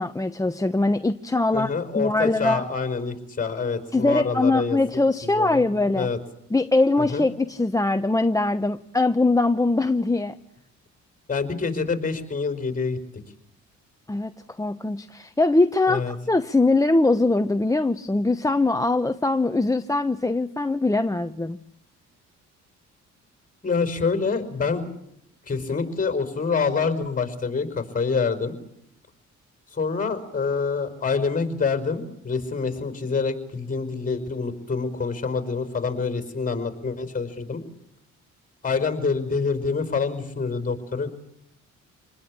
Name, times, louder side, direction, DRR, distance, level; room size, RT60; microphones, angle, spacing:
voice 1, 0.0-1.7 1.9-2.6 3.9-6.1 6.5-10.4 14.1-14.3 14.6-21.6, left 2 dB, 10° left, 9 dB, 0.9 m, -22 dB
voice 2, 1.5-5.7 6.0-6.2 7.0-7.2 11.3-13.0 15.9-16.2 23.6-24.9 25.5-28.6 29.7-37.6 38.6-41.1, left 5 dB, 25° left, 9 dB, 5.2 m, -26 dB
27.0 x 20.0 x 8.7 m, 0.74 s
cardioid pair, 90°, 30 cm